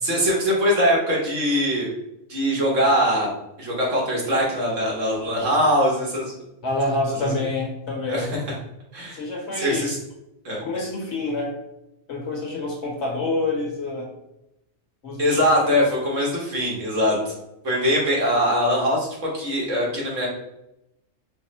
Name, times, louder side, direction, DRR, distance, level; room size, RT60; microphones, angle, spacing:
voice 1, 0.0-1.9 2.3-3.3 3.6-6.3 8.1-8.3 8.9-9.2 9.6-10.0 10.4-10.6 15.2-17.3 17.6-19.1 19.3-20.3, equal, 70° right, -3 dB, 1.6 m, -22 dB
voice 2, 6.6-8.3 9.1-9.9 10.6-11.6 12.1-14.1 15.0-15.4, left 2 dB, 60° left, 0 dB, 1.2 m, -27 dB
4.6 x 2.0 x 4.1 m, 0.87 s
omnidirectional pair, 1.3 m